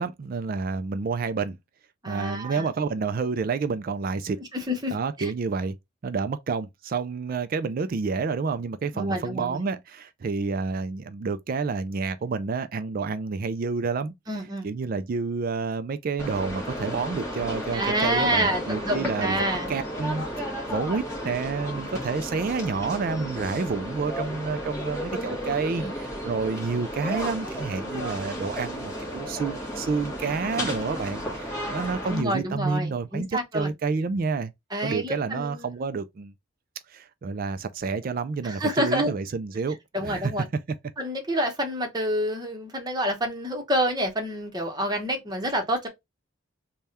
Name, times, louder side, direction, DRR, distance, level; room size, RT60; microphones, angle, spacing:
voice 1, 0.0-1.6 2.1-4.4 4.9-5.8 6.0-14.1 14.6-19.4 19.7-34.5 34.8-36.3 36.9-40.3, right 4 dB, 45° right, 0.3 m, -29 dB
voice 2, 2.0-2.7 4.4-5.3 8.9-9.6 14.3-14.7 17.7-19.7 25.8-25.9 32.1-33.7 34.7-35.7 38.4-39.1 39.9-40.5 41.0-45.9, equal, 20° right, 0.9 m, -28 dB
sound 1, 16.2-32.2, equal, 15° left, 1.4 m, -33 dB
3.4 x 2.3 x 4.1 m
head